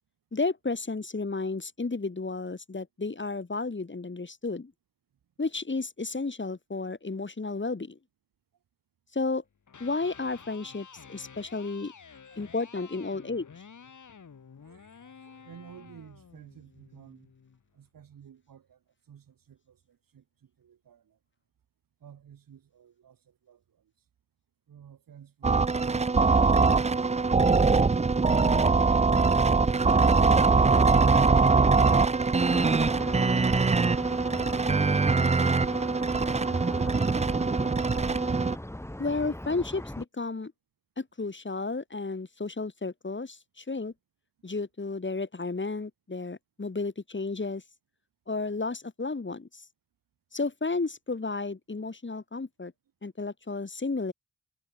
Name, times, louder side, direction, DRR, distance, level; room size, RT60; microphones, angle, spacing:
voice 1, 0.3-4.7 5.4-8.0 9.1-9.4 9.8-11.9 12.4-13.4 39.0-40.5 41.0-43.9 44.4-47.6 48.3-49.6 50.3-52.7 53.0-54.1, left 3 dB, 35° left, 5.0 m, -32 dB
Electric guitar, 9.6-17.7, left 6 dB, 60° left, 6.2 m, -51 dB
voice 2, 12.3-12.7 14.6-17.3 17.7-18.8 19.1-21.2 22.0-23.9 24.7-27.0 43.7-43.8, right 8 dB, 80° right, 6.0 m, -54 dB
sound 1, 25.4-38.6, right 4 dB, 20° right, 0.6 m, -22 dB
sound 2, 32.5-40.0, left 1 dB, 10° left, 3.6 m, -39 dB
cardioid pair, 50°, 33 cm